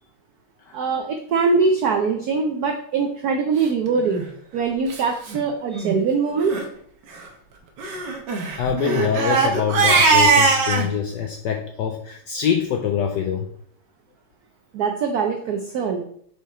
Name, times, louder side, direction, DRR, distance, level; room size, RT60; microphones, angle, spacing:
voice 1, 0.7-4.2 4.5-6.6 14.7-16.0, right 5 dB, 90° right, 4 dB, 0.8 m, -22 dB
Crying sobbing, 4.0-4.2 4.9-5.0 5.3-5.4 5.7-6.0 6.4-6.6 7.8-10.9, right 4 dB, 60° right, 1.4 m, -20 dB
voice 2, 8.6-13.5, left 8 dB, 80° left, 4 dB, 0.9 m, -24 dB
5.5 x 4.7 x 4.2 m, 0.64 s
omnidirectional pair, 2.4 m